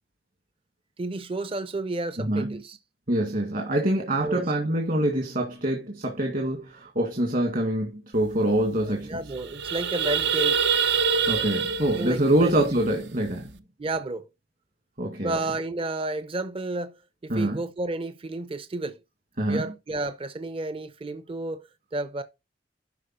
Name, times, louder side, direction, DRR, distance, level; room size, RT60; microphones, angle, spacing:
voice 1, 1.0-2.8 4.2-4.5 8.8-10.6 11.8-12.5 13.8-14.3 15.2-19.0 19.5-22.2, right 2 dB, 30° right, 0.6 m, -31 dB
voice 2, 2.2-2.6 3.1-9.1 11.3-13.5 15.0-15.4 17.3-17.6 19.4-19.7, right 1 dB, 55° right, 1.9 m, -25 dB
sound 1, 8.3-8.4 8.6-8.8 9.2-13.5, right 6 dB, 75° right, 0.7 m, -26 dB
11.5 x 4.7 x 4.2 m
head